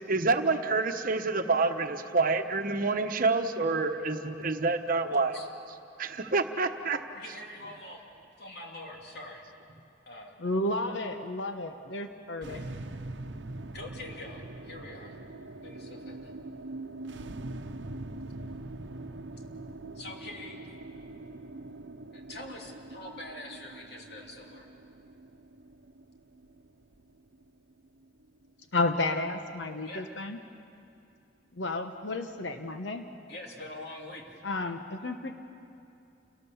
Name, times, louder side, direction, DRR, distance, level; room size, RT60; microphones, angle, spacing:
voice 1, 0.1-5.4 6.0-7.0, right 3 dB, 50° right, 7 dB, 1.0 m, -27 dB
voice 2, 7.1-8.0 8.4-9.4 10.1-10.3 12.4-12.8 13.7-15.2 15.6-16.3 19.9-20.6 22.1-24.7 29.8-30.1 33.3-34.4, left 2 dB, 60° left, 0 dB, 2.9 m, -44 dB
voice 3, 10.4-12.6 28.7-30.4 31.5-33.0 34.4-35.3, left 2 dB, 75° left, 7 dB, 1.1 m, -32 dB
sound 1, 12.4-28.8, right 2 dB, 70° right, 0.9 m, -43 dB
29.0 x 18.0 x 7.1 m, 2.6 s
head